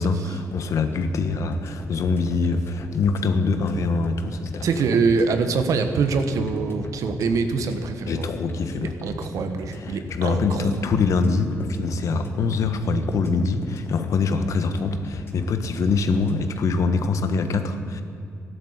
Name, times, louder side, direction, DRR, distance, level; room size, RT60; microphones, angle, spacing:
voice 1, 0.0-4.9 8.1-8.9 9.7-18.0, left 4 dB, 70° left, 8 dB, 1.4 m, -24 dB
sound 1, 0.5-16.6, left 3 dB, 45° left, 2.1 m, -38 dB
voice 2, 4.6-8.3 8.8-10.7, right 4 dB, 75° right, 8 dB, 1.5 m, -24 dB
13.5 x 12.0 x 8.8 m, 2.6 s
cardioid pair, 110°, 6 cm